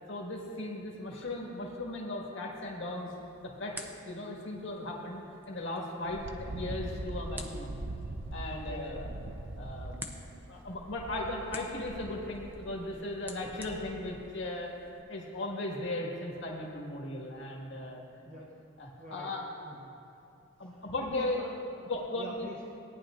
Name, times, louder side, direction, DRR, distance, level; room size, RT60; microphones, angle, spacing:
voice 1, 0.1-3.1 3.4-7.8 8.3-9.1 9.6-10.2 10.5-14.7 15.1-18.0 18.8-19.4 20.6-21.4 21.9-22.5, left 2 dB, 65° left, -2 dB, 1.8 m, -37 dB
sound 1, 2.9-15.0, right 1 dB, 10° right, 0.7 m, -51 dB
voice 2, 5.9-6.2 8.5-8.9 18.2-18.5 19.0-19.3 19.6-20.0 20.6-21.8 22.1-22.6, equal, 35° right, -5 dB, 1.1 m, -46 dB
Wind, 6.0-14.2, right 2 dB, 60° right, 0.7 m, -42 dB
17.5 x 10.0 x 2.5 m, 2.9 s
head